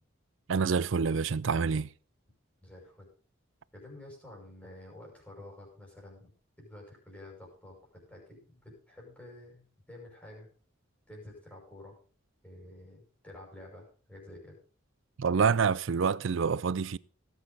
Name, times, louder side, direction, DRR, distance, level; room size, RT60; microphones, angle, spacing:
voice 1, 0.5-1.9 15.2-17.0, right 5 dB, 70° right, 0.4 m, -27 dB
voice 2, 2.6-3.1 3.7-6.3 6.6-7.8 8.1-10.5 11.1-12.0 12.4-14.6, left 1 dB, 5° left, 5.7 m, -50 dB
17.5 x 8.3 x 4.0 m
head